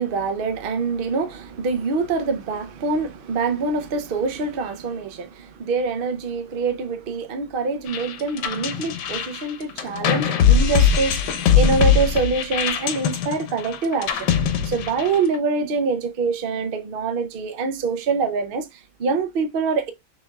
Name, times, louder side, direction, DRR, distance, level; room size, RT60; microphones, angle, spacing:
voice 1, 0.0-14.3 14.6-19.9, right 4 dB, 60° right, 0.5 m, -25 dB
sound 1, 7.9-15.4, left 7 dB, 90° left, 1.4 m, -21 dB
6.1 x 3.4 x 2.3 m
omnidirectional pair, 1.8 m